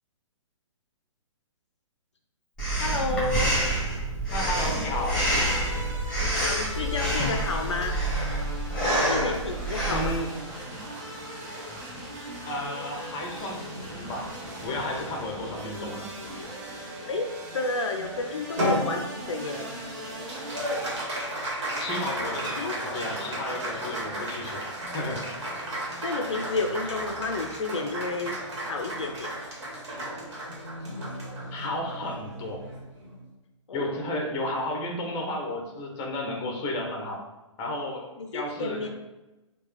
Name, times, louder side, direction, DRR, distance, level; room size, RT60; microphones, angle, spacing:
Breathing, 2.6-10.2, right 1 dB, 5° left, 1.4 m, -27 dB
voice 1, 2.8-3.6 6.2-8.0 9.0-10.1 17.1-19.8 22.4-22.7 26.0-29.3 33.7-34.0 38.2-38.9, left 3 dB, 60° left, 4 dB, 0.5 m, -31 dB
voice 2, 4.3-5.2 9.9-10.3 12.5-14.3 14.6-16.1 21.7-24.6 24.9-25.2 31.5-32.6 33.7-37.3 37.6-38.9, left 1 dB, 20° left, 1 dB, 0.7 m, -32 dB
sound 1, 4.3-21.0, right 1 dB, 35° right, 1.1 m, -39 dB
Applause, 18.6-33.2, equal, 55° right, 1.4 m, -33 dB
4.6 x 2.3 x 3.2 m, 1.1 s
figure-of-eight pair, 125°, 16 cm